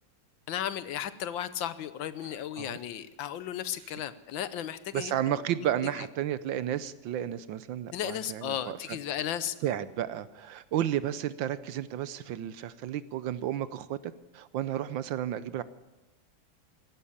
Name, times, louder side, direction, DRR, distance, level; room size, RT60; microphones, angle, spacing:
voice 1, 0.5-5.4 6.0-6.1 7.9-9.6, left 10 dB, 70° left, 14 dB, 1.4 m, -35 dB
voice 2, 4.9-8.8 9.6-15.6, right 11 dB, 70° right, 16 dB, 1.3 m, -32 dB
15.0 x 12.5 x 7.1 m, 1.1 s
omnidirectional pair, 2.3 m